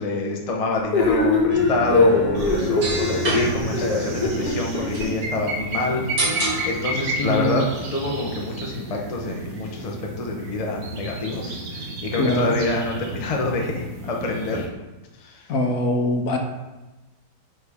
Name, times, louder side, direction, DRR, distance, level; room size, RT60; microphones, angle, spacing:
voice 1, 0.0-6.0 6.6-14.7 15.2-15.5, left 2 dB, 45° left, 0 dB, 0.5 m, -27 dB
sound 1, 0.9-5.1, left 3 dB, 80° left, 1.7 m, -21 dB
sound 2, 1.5-8.7, right 3 dB, 45° right, 1.4 m, -31 dB
sound 3, 2.3-14.7, right 2 dB, 60° right, 1.4 m, -32 dB
voice 2, 7.2-7.7 12.2-12.5 15.5-16.4, left 1 dB, 65° left, 3 dB, 1.1 m, -22 dB
8.8 x 3.4 x 3.5 m, 1.1 s
omnidirectional pair, 1.8 m